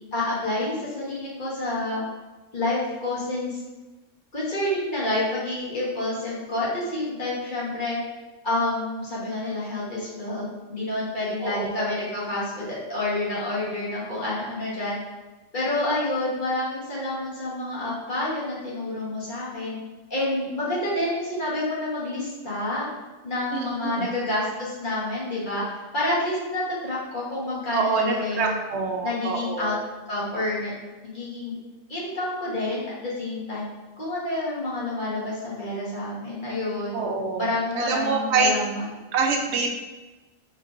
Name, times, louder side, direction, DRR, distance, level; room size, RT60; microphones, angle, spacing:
voice 1, 0.1-2.0 2.5-3.6 4.3-8.0 8.4-10.4 10.7-15.0 15.5-19.8 20.1-22.9 23.2-25.6 25.9-28.5 29.0-29.8 30.1-30.7 31.0-31.5 31.9-33.7 34.0-37.0 37.4-38.8, left 2 dB, 40° left, -8 dB, 1.2 m, -28 dB
voice 2, 11.4-11.9 23.5-24.1 27.7-29.8 36.9-38.5 39.1-39.7, right 4 dB, 65° right, 2 dB, 0.8 m, -26 dB
4.4 x 2.9 x 2.5 m, 1.1 s
omnidirectional pair, 1.3 m